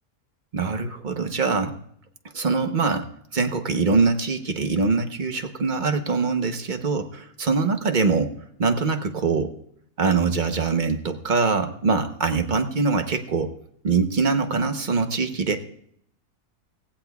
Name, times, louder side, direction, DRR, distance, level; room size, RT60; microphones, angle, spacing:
voice 1, 0.5-1.8 2.3-3.1 3.3-8.3 8.6-9.5 10.0-13.5 13.8-15.6, right 4 dB, 35° right, 7 dB, 0.9 m, -23 dB
18.0 x 15.5 x 2.3 m, 0.67 s
omnidirectional pair, 1.6 m